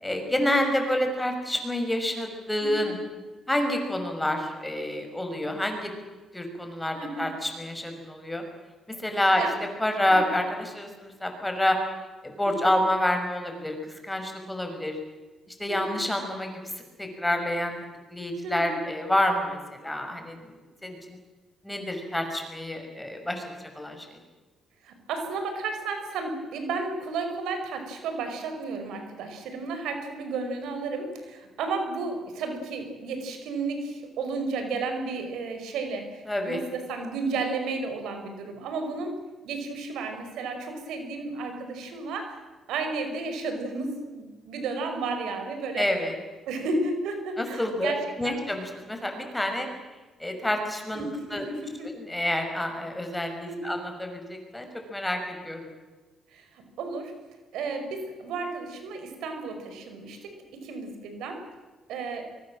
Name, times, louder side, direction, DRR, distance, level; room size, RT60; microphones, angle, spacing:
voice 1, 0.0-3.0 3.5-5.9 6.3-8.4 8.9-9.5 9.8-11.8 12.2-13.8 14.0-15.0 15.6-17.7 18.1-20.5 20.8-21.2 21.6-23.4 23.8-24.2 36.3-36.6 45.8-46.1 47.4-47.9 48.2-49.7 50.2-51.5 51.8-55.7, left 1 dB, 10° left, 5 dB, 6.1 m, -28 dB
voice 2, 7.0-7.3 9.4-9.5 10.1-10.3 12.5-12.7 15.7-16.0 18.4-18.8 24.8-39.2 39.4-42.4 42.7-45.9 46.5-48.4 50.9-51.9 53.5-53.7 56.3-57.1 57.5-61.4 61.9-62.3, right 3 dB, 85° right, 6 dB, 5.3 m, -33 dB
24.5 x 22.5 x 7.7 m, 1.3 s
cardioid pair, 90°, 0 cm